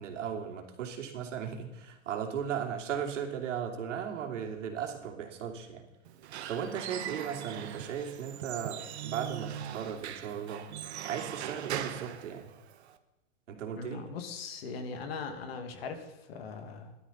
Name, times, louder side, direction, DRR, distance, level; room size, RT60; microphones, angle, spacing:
voice 1, 0.0-5.9 6.5-10.6 11.0-12.5 13.5-14.0, right 8 dB, 80° right, 2 dB, 3.0 m, -36 dB
Squeak / Wood, 6.1-13.0, right 10 dB, 60° right, 1.2 m, -40 dB
voice 2, 13.8-17.0, left 4 dB, 55° left, 6 dB, 2.3 m, -40 dB
17.0 x 12.5 x 4.2 m, 1.0 s
supercardioid pair, 175°, 37 cm